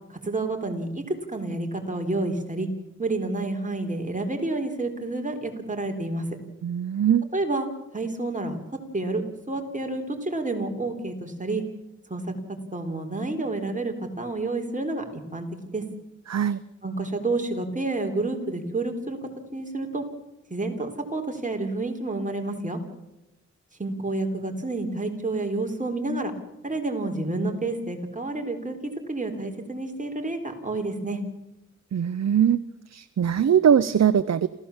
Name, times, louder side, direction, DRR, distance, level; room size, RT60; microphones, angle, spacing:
voice 1, 0.1-2.7 3.0-6.3 7.3-7.7 7.9-8.6 8.9-11.6 12.1-12.3 12.7-15.8 16.8-19.2 19.5-20.0 20.5-22.8 23.8-26.3 26.6-31.2, right 2 dB, 25° right, 3 dB, 3.8 m, -29 dB
voice 2, 6.6-7.3 16.3-16.6 31.9-32.6 32.9-34.5, right 8 dB, 65° right, 12 dB, 0.7 m, -21 dB
27.5 x 15.5 x 7.3 m, 0.94 s
wide cardioid pair, 75°, 29 cm